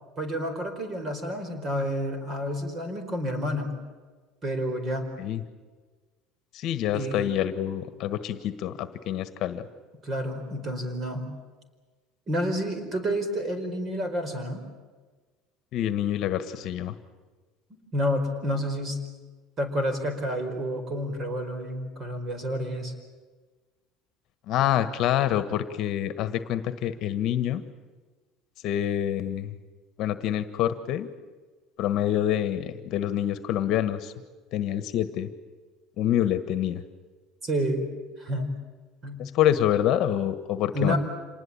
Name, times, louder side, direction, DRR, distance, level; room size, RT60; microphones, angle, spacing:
voice 1, 0.2-3.8 4.4-5.1 6.9-7.3 10.0-11.3 12.3-14.6 17.9-19.0 19.6-22.9 37.4-37.9 38.2-38.6 39.0-39.2 40.7-41.0, equal, 30° right, 8 dB, 4.7 m, -29 dB
voice 2, 6.5-9.7 15.7-17.0 24.5-27.6 28.6-29.5 30.0-31.1 31.8-34.1 34.5-35.3 36.0-36.8 39.2-41.0, left 11 dB, 50° left, 11 dB, 1.4 m, -26 dB
27.0 x 20.0 x 8.8 m, 1.3 s
cardioid pair, 145°, 0 cm